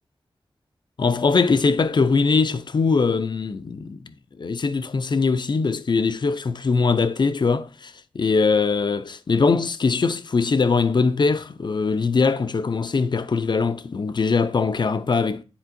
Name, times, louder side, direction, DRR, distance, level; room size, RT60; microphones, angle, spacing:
voice 1, 1.0-15.4, left 4 dB, 50° left, 0.5 m, -21 dB
10.0 x 4.3 x 2.6 m
wide cardioid pair, 70°, 10 cm